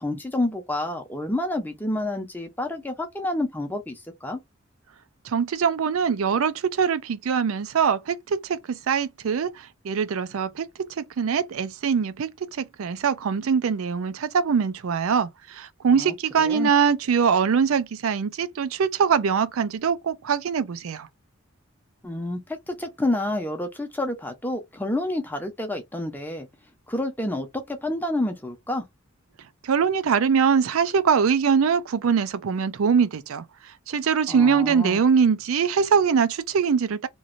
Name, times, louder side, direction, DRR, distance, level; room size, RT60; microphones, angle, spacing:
voice 1, 0.0-4.4 15.9-16.7 22.0-26.5 26.9-28.8 34.3-35.0, left 1 dB, 10° left, 0.6 m, -29 dB
voice 2, 5.2-10.7 11.0-21.1 29.6-37.1, right 6 dB, 80° right, 0.4 m, -23 dB
3.0 x 2.6 x 2.5 m
head